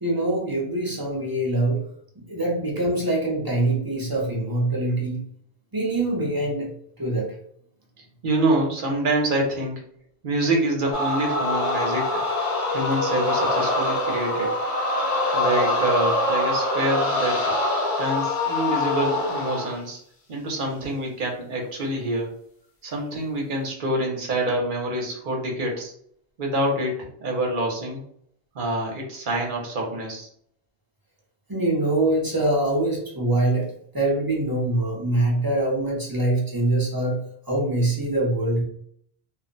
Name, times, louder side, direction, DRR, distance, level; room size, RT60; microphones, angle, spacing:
voice 1, 0.0-1.8 2.2-5.2 5.7-6.7 7.0-7.3 31.5-37.2 37.5-38.6, right 1 dB, 25° right, -4 dB, 0.7 m, -24 dB
voice 2, 8.2-9.8 10.2-12.2 12.7-14.6 15.3-17.5 18.0-20.0 20.3-22.3 22.8-25.9 26.4-28.0 28.5-30.3, right 1 dB, 50° right, 0 dB, 0.9 m, -26 dB
sound 1, 10.9-19.8, left 2 dB, 55° left, 0.8 m, -24 dB
2.4 x 2.1 x 3.8 m, 0.67 s
omnidirectional pair, 1.1 m